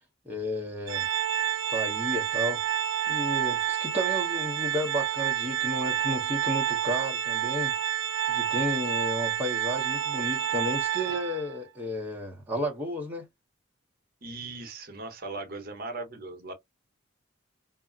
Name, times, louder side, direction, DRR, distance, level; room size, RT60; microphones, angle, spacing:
voice 1, 0.3-1.1 1.7-2.6 3.1-7.7 8.3-13.3, equal, 10° right, 0.6 m, -32 dB
Organ, 0.9-11.6, right 11 dB, 65° right, 0.4 m, -29 dB
voice 2, 14.2-16.5, right 3 dB, 50° right, 0.7 m, -38 dB
2.4 x 2.0 x 3.6 m
head